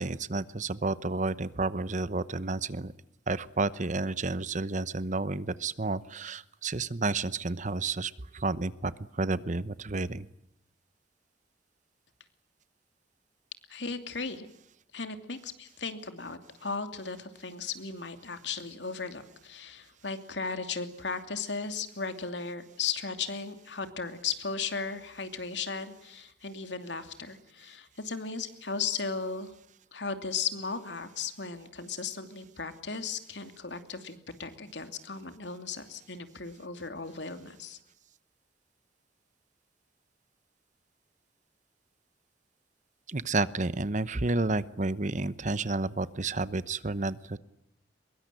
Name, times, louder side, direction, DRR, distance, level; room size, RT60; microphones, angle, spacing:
voice 1, 0.0-2.9 3.3-10.3 43.1-47.4, right 3 dB, 45° right, 16 dB, 1.0 m, -31 dB
voice 2, 13.7-14.5 14.9-29.5 29.9-37.8, left 5 dB, 90° left, 8 dB, 2.7 m, -36 dB
23.5 x 22.0 x 9.2 m, 0.75 s
head